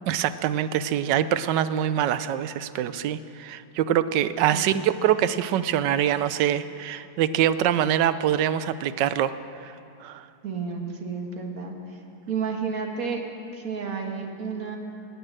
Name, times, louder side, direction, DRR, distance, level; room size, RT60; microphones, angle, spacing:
voice 1, 0.1-9.3 9.6-9.7 10.0-10.2, right 10 dB, 90° right, 14 dB, 1.3 m, -24 dB
voice 2, 10.4-12.0 12.3-13.2 13.5-14.8, right 5 dB, 55° right, 2 dB, 1.9 m, -31 dB
17.0 x 8.7 x 8.8 m, 2.7 s
omnidirectional pair, 1.8 m